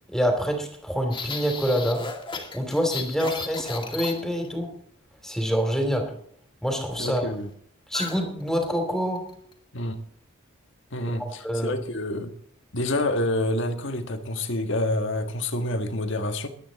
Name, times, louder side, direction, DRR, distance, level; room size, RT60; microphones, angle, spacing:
voice 1, 0.1-2.0 2.5-4.7 5.2-6.1 6.6-7.3 7.9-9.2 11.1-11.7, equal, ahead, 3.0 m, -26 dB
sound 1, 1.1-4.6 7.9-8.2 8.5-8.7 9.2-9.5, left 4 dB, 25° left, 2.4 m, -34 dB
voice 2, 7.0-7.5 9.7-10.0 10.9-12.3 12.7-16.5, left 1 dB, 60° left, 1.6 m, -27 dB
22.0 x 9.3 x 4.1 m
head